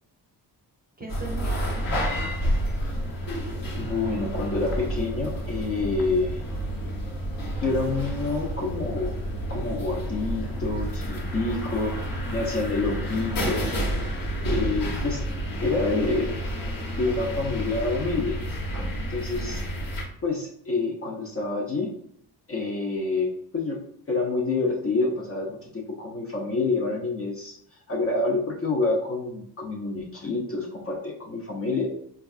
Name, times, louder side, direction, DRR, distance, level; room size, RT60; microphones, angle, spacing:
voice 1, 1.0-2.5 18.9-19.6, right 3 dB, 25° right, 0 dB, 0.6 m, -41 dB
sound 1, 1.1-20.0, equal, 55° left, 1.0 m, -30 dB
voice 2, 3.8-6.4 7.6-9.1 9.5-12.0 12.3-13.7 14.4-15.2 15.6-16.4 16.9-18.4 19.1-19.6 20.2-21.9 22.5-23.8 24.1-27.6 27.9-31.9, left 3 dB, 35° left, -2 dB, 0.6 m, -27 dB
4.4 x 2.3 x 2.3 m, 0.69 s
cardioid pair, 120°, 40 cm